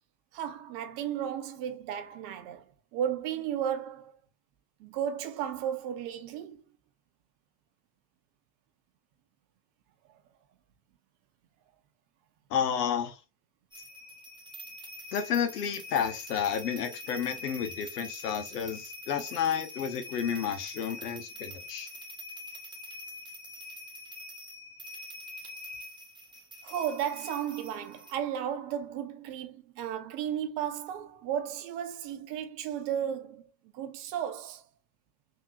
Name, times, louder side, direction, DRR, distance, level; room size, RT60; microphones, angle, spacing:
voice 1, 0.3-4.1 4.8-6.6 26.6-34.7, right 9 dB, 65° right, 0.8 m, -34 dB
voice 2, 12.5-13.2 15.1-21.9, left 8 dB, 80° left, 0.8 m, -31 dB
sound 1, 13.7-28.2, left 2 dB, 10° right, 1.3 m, -44 dB
3.6 x 2.8 x 2.7 m
figure-of-eight pair, 55°, 46 cm